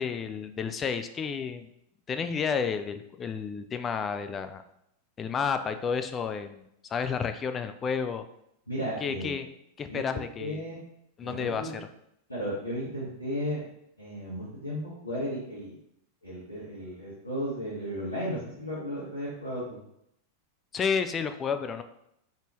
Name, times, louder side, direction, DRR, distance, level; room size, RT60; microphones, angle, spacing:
voice 1, 0.0-1.7 2.1-4.6 5.2-8.2 9.0-9.5 9.8-10.6 11.2-11.9 20.7-21.8, left 6 dB, 25° left, 9 dB, 0.3 m, -31 dB
voice 2, 8.7-9.3 9.9-10.8 11.2-11.7 12.3-13.6 14.0-15.8 16.2-19.8, equal, 85° left, -8 dB, 1.2 m, -34 dB
4.0 x 3.5 x 3.0 m, 0.77 s
figure-of-eight pair, 90°, 0 cm